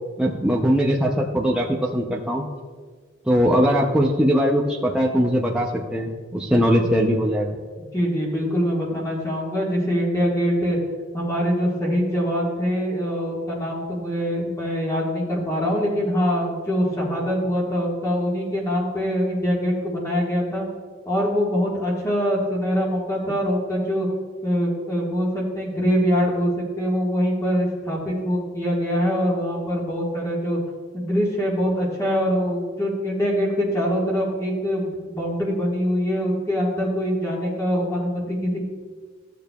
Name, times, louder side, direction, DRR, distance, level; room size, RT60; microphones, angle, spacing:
voice 1, 0.2-2.5 3.3-7.6, equal, 5° right, -3 dB, 0.5 m, -20 dB
voice 2, 7.8-10.8 11.1-20.7 21.0-24.1 24.4-30.6 30.9-38.6, equal, 15° left, -4 dB, 1.5 m, -24 dB
13.5 x 6.7 x 2.3 m, 1.5 s
head